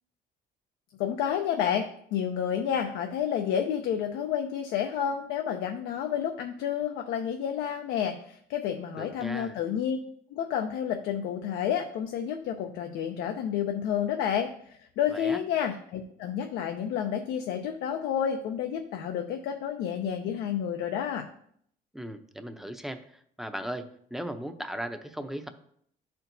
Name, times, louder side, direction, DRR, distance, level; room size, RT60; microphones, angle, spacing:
voice 1, 1.0-10.0 10.3-21.3, left 8 dB, 85° left, 4 dB, 0.6 m, -30 dB
voice 2, 9.0-9.6 15.1-15.4 21.9-25.5, equal, ahead, 7 dB, 0.6 m, -37 dB
11.0 x 4.5 x 2.7 m, 0.66 s
cardioid pair, 110°, 17 cm